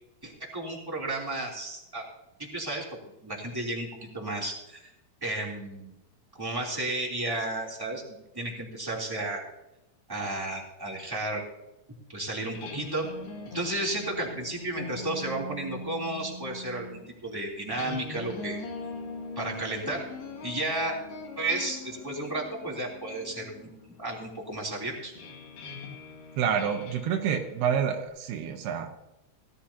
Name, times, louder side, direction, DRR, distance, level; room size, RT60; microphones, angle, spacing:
voice 1, 0.2-2.1 2.4-2.8 3.2-3.9 4.1-4.9 5.2-5.9 6.4-8.0 8.3-9.4 10.1-11.4 12.1-13.1 13.5-18.6 19.3-20.0 20.4-20.9 21.4-23.7 24.0-25.1, right 2 dB, 5° right, -3 dB, 2.6 m, -33 dB
sound 1, 12.4-28.1, left 2 dB, 80° left, 4.2 m, -42 dB
voice 2, 26.4-28.9, right 8 dB, 85° right, 3 dB, 3.2 m, -28 dB
18.0 x 13.0 x 2.9 m, 0.93 s
omnidirectional pair, 4.5 m